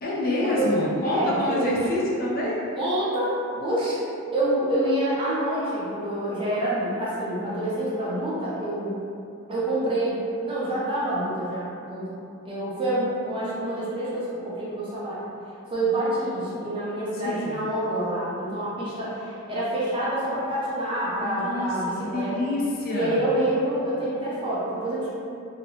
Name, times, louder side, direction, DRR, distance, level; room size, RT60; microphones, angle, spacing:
voice 1, 0.0-2.6 17.2-17.6 21.2-21.7 22.0-23.2, left 1 dB, 45° left, -5 dB, 0.4 m, -27 dB
voice 2, 1.0-1.7 2.8-4.0 4.3-8.9 9.5-12.1 12.4-15.2 15.7-22.4 22.9-25.1, right 1 dB, 25° right, -9 dB, 0.6 m, -27 dB
2.7 x 2.0 x 2.7 m, 2.6 s
head